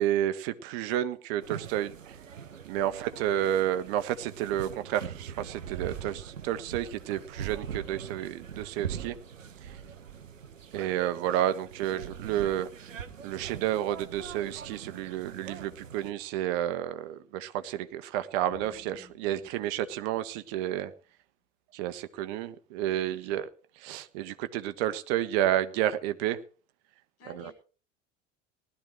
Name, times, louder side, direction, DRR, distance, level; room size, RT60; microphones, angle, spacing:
voice 1, 0.0-2.1 2.7-9.2 10.7-12.9 13.2-20.9 21.7-23.5 23.8-26.4 27.3-27.5, right 12 dB, 55° right, 12 dB, 1.4 m, -30 dB
sound 1, 1.4-16.1, right 8 dB, 80° right, 1.0 m, -42 dB
voice 2, 2.9-3.3 23.1-23.4 27.2-27.5, left 4 dB, 40° left, 6 dB, 7.0 m, -51 dB
sound 2, 18.4-20.9, left 1 dB, 10° left, 6.7 m, -56 dB
19.5 x 13.0 x 3.2 m, 0.37 s
figure-of-eight pair, 70°, 38 cm